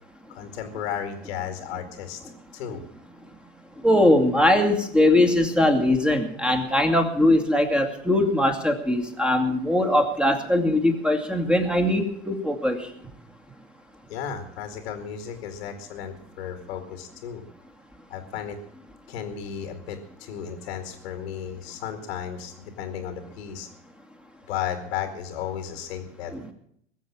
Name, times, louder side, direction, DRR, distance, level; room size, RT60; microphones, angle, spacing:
voice 1, 0.3-2.2 2.5-2.8 14.1-17.4 18.1-18.6 19.1-23.7 24.5-26.5, left 8 dB, 70° left, 5 dB, 2.3 m, -34 dB
voice 2, 3.8-12.8 26.3-26.4, left 1 dB, 5° right, 5 dB, 2.4 m, -21 dB
21.5 x 7.5 x 7.2 m, 0.69 s
hypercardioid pair, 95°, 34 cm